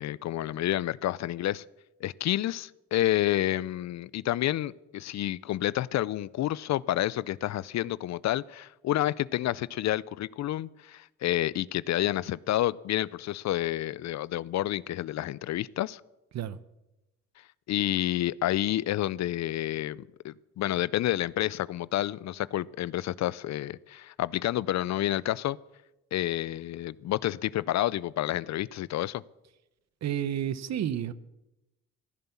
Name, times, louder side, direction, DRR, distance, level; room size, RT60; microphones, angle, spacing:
voice 1, 0.0-1.6 2.0-16.0 17.7-25.6 26.1-29.2, left 14 dB, 65° left, 0.5 m, -29 dB
voice 2, 30.0-31.1, right 10 dB, 60° right, 0.9 m, -30 dB
15.0 x 10.5 x 7.2 m
cardioid pair, 90°, 30 cm